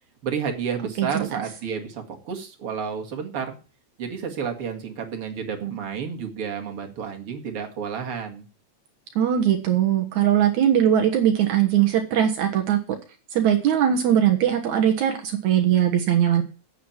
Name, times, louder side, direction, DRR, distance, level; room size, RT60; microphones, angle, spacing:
voice 1, 0.2-3.6 4.0-8.4, right 6 dB, 50° right, 4 dB, 2.8 m, -31 dB
voice 2, 1.0-1.4 9.2-12.8 13.3-16.4, right 10 dB, 80° right, 4 dB, 2.7 m, -20 dB
8.8 x 8.0 x 8.9 m, 0.35 s
omnidirectional pair, 3.4 m